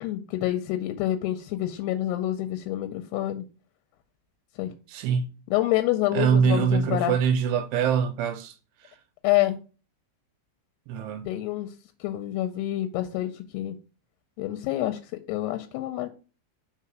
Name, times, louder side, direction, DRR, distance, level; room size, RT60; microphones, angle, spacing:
voice 1, 0.0-3.5 4.6-4.7 5.5-7.1 9.2-9.6 11.2-11.7 12.0-13.8 14.4-15.0 15.3-16.1, left 14 dB, 85° left, 2.6 m, -27 dB
voice 2, 4.9-5.3 6.1-8.6 8.8-8.9 10.9-11.3, right 7 dB, 80° right, 2.6 m, -24 dB
5.8 x 3.8 x 6.0 m
omnidirectional pair, 4.9 m